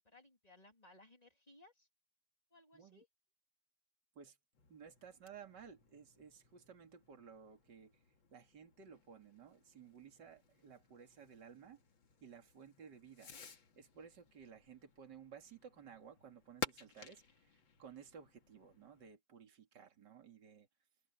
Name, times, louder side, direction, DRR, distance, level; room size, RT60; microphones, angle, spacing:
voice 1, 0.0-1.9 2.5-3.1, left 2 dB, 20° left, 3.4 m, -63 dB
voice 2, 2.7-3.0 4.2-4.4 4.7-8.0 8.3-11.8 12.2-13.3 13.8-20.7, right 7 dB, 60° right, 3.0 m, -56 dB
Fireworks, 4.5-19.1, left 5 dB, 80° left, 3.0 m, -54 dB
omnidirectional pair, 2.1 m